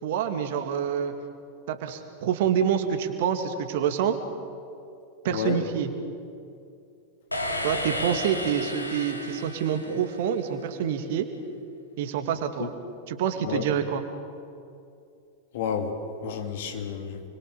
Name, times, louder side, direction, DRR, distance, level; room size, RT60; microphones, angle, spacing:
voice 1, 0.0-1.1 1.7-4.2 5.2-5.9 7.6-11.3 12.0-12.7 13.1-14.0, right 8 dB, 55° right, 7 dB, 2.3 m, -27 dB
voice 2, 5.3-5.6 12.6-12.7 13.4-13.6 15.5-17.2, left 7 dB, 55° left, 5 dB, 2.9 m, -30 dB
sound 1, 7.3-10.5, left 1 dB, 85° left, 2.6 m, -33 dB
29.5 x 22.5 x 7.0 m, 2.5 s
figure-of-eight pair, 90°, 0 cm